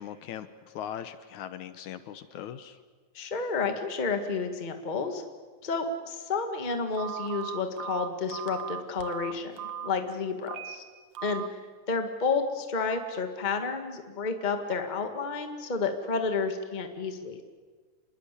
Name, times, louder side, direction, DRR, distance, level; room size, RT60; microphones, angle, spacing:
voice 1, 0.0-2.8, left 10 dB, 70° left, 11 dB, 2.2 m, -40 dB
voice 2, 3.1-5.2 5.6-9.5 9.8-10.8 11.2-11.4 11.9-17.4, left 4 dB, 20° left, 6 dB, 1.4 m, -30 dB
Telephone, 7.0-9.9 10.4-10.8 11.2-11.5, right 9 dB, 60° right, 1.7 m, -37 dB
27.0 x 21.0 x 8.5 m, 1.5 s
omnidirectional pair, 3.7 m